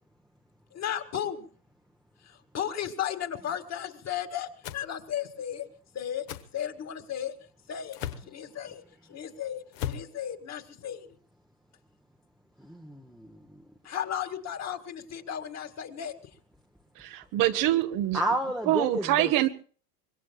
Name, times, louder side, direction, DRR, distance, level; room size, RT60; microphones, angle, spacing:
voice 1, 0.7-1.5 2.2-5.7 5.9-6.3 6.5-7.3 7.7-8.0 8.3-8.8 9.1-11.1 13.8-16.1, left 9 dB, 35° left, 2.1 m, -34 dB
sound 1, 4.6-4.9 6.3-6.5 7.9-8.3 9.7-10.1, left 10 dB, 60° left, 1.4 m, -35 dB
voice 2, 12.6-13.3 18.1-19.5, right 1 dB, ahead, 1.0 m, -31 dB
voice 3, 17.0-18.2 18.7-19.5, right 14 dB, 45° right, 1.0 m, -25 dB
25.0 x 21.5 x 2.3 m
hypercardioid pair, 100°, 48 cm